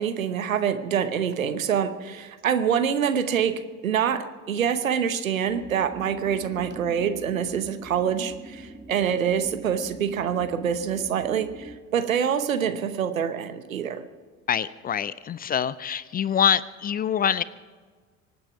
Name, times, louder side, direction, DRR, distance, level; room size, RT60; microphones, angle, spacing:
voice 1, 0.0-14.0, right 8 dB, 80° right, 10 dB, 1.0 m, -26 dB
sound 1, 5.5-11.8, right 1 dB, 5° right, 1.2 m, -44 dB
voice 2, 14.5-17.4, left 8 dB, 25° left, 19 dB, 0.4 m, -25 dB
24.0 x 9.3 x 5.8 m, 1.5 s
figure-of-eight pair, 65°, 40 cm